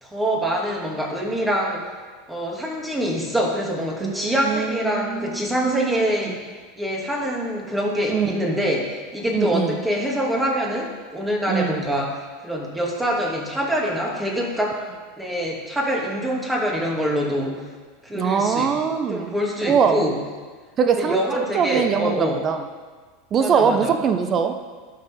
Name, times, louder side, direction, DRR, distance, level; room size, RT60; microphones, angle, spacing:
voice 1, 0.0-1.9 2.3-6.4 6.8-14.8 15.2-17.6 18.0-18.7 19.1-20.2 20.9-22.4 23.4-23.9, equal, 10° right, -2 dB, 3.0 m, -25 dB
voice 2, 4.0-6.3 8.1-8.4 9.3-9.8 11.5-11.8 18.1-19.3 19.6-20.0 20.8-22.6 23.3-24.7, right 6 dB, 35° right, 8 dB, 0.9 m, -23 dB
18.0 x 6.6 x 4.0 m, 1.4 s
hypercardioid pair, 85°, 0 cm